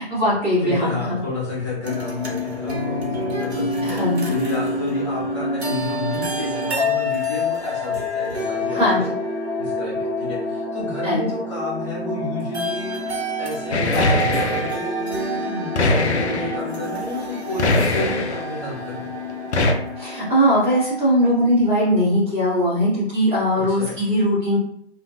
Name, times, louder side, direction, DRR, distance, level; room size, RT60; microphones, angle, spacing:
voice 1, 0.0-1.2 3.8-4.3 8.7-9.0 11.0-11.3 20.0-24.6, equal, 5° right, -12 dB, 0.7 m, -20 dB
voice 2, 0.6-9.1 9.6-12.9 13.4-19.1 23.5-24.0, left 2 dB, 30° left, -7 dB, 0.6 m, -31 dB
sound 1, 1.8-20.7, left 1 dB, 70° right, 0.9 m, -27 dB
sound 2, 13.7-14.8 15.7-16.6 17.6-18.4 19.5-19.7, left 2 dB, 80° left, 0.5 m, -21 dB
2.4 x 2.1 x 2.5 m, 0.69 s
figure-of-eight pair, 135°, 33 cm